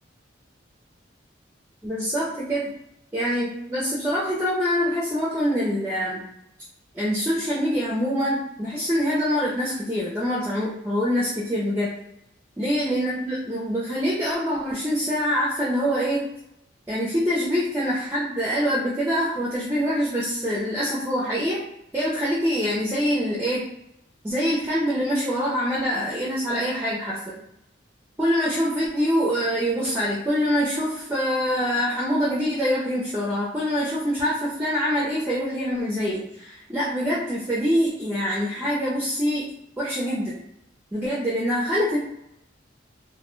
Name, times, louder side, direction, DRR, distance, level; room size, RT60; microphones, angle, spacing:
voice 1, 1.8-2.7 3.1-6.2 6.9-11.9 12.6-16.3 16.9-21.6 21.9-23.7 24.2-27.4 28.2-39.5 39.8-40.4 40.9-42.0, equal, 10° right, -7 dB, 0.4 m, -25 dB
2.2 x 2.1 x 3.0 m, 0.81 s
head